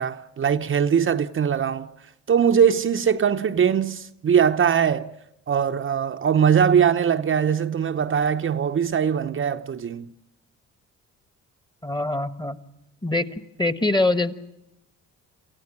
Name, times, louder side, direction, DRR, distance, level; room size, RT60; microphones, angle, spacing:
voice 1, 0.0-1.9 2.3-5.1 5.5-10.1, right 7 dB, 45° right, 0.8 m, -21 dB
voice 2, 11.8-12.6 13.0-13.3 13.6-14.3, left 2 dB, 15° left, 1.4 m, -23 dB
28.0 x 14.5 x 9.6 m
cardioid pair, 90°, 30 cm